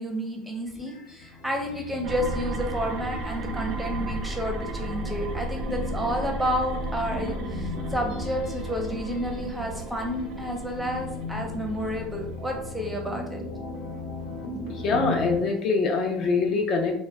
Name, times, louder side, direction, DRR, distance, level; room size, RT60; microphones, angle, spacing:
voice 1, 0.0-13.4, equal, 5° right, 1 dB, 0.5 m, -30 dB
sound 1, 0.7-15.4, left 2 dB, 85° left, 0.8 m, -37 dB
sound 2, 2.0-12.7, right 2 dB, 55° right, 0.3 m, -35 dB
voice 2, 14.6-16.9, left 4 dB, 45° left, 3 dB, 0.4 m, -24 dB
2.2 x 2.0 x 3.4 m, 0.78 s
supercardioid pair, 120°, 0 cm